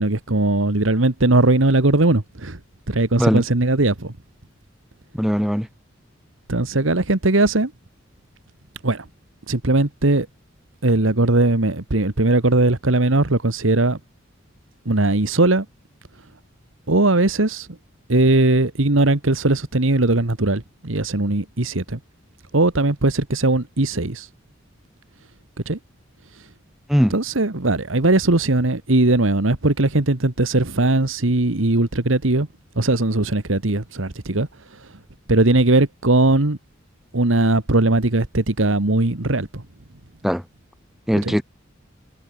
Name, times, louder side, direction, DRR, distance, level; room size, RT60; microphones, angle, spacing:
voice 1, 0.0-2.6 2.9-4.1 6.5-7.7 8.8-9.0 9.5-10.3 10.8-14.0 14.8-15.6 16.9-17.7 18.1-22.0 22.5-24.3 25.6-25.8 27.1-32.5 32.7-34.5 35.3-36.6 37.1-39.6 41.2-41.3, right 2 dB, 80° right, 1.7 m, -19 dB
voice 2, 5.1-5.7 26.9-27.1 40.2-40.4 41.1-41.4, equal, ahead, 5.6 m, -19 dB
head